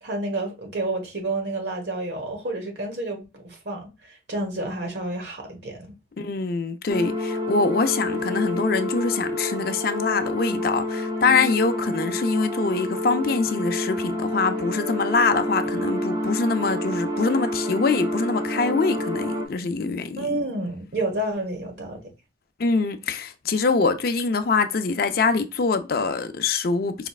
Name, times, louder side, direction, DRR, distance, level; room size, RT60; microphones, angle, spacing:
voice 1, 0.0-5.9 20.2-22.0, right 2 dB, 70° right, 1.4 m, -30 dB
voice 2, 6.2-20.4 22.6-27.1, left 4 dB, 55° left, 0.5 m, -24 dB
sound 1, 6.9-19.5, left 1 dB, 25° right, 0.9 m, -28 dB
4.9 x 3.1 x 2.4 m
head